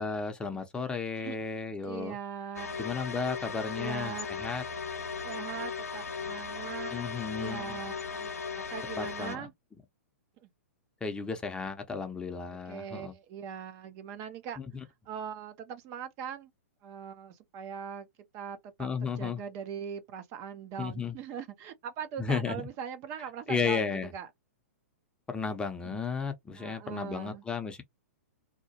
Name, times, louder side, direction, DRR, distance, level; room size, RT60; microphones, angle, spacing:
voice 1, 0.0-2.2 2.8-4.6 6.9-7.8 9.0-9.5 11.0-13.1 14.6-14.7 18.8-19.4 20.8-21.1 22.2-22.7 23.5-24.1 25.3-27.8, left 5 dB, 10° left, 0.6 m, -34 dB
voice 2, 1.8-2.8 3.8-4.6 5.2-7.0 7.4-9.5 10.4-10.5 12.5-14.6 15.1-16.5 16.8-18.1 18.3-24.3 25.8-26.0 26.6-27.4, right 8 dB, 35° right, 0.5 m, -41 dB
sound 1, 2.5-9.3, left 5 dB, 80° left, 0.6 m, -37 dB
2.8 x 2.0 x 2.8 m
figure-of-eight pair, 115°, 8 cm